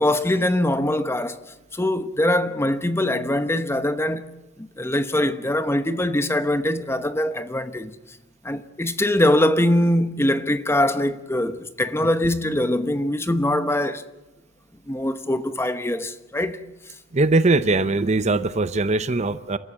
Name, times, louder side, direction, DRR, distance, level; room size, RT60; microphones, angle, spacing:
voice 1, 0.0-1.4 1.7-4.3 4.6-8.0 8.4-14.0 14.9-16.6, left 1 dB, 10° left, 0.9 m, -22 dB
voice 2, 17.1-19.6, right 3 dB, 35° right, 0.6 m, -21 dB
29.5 x 13.5 x 7.6 m
head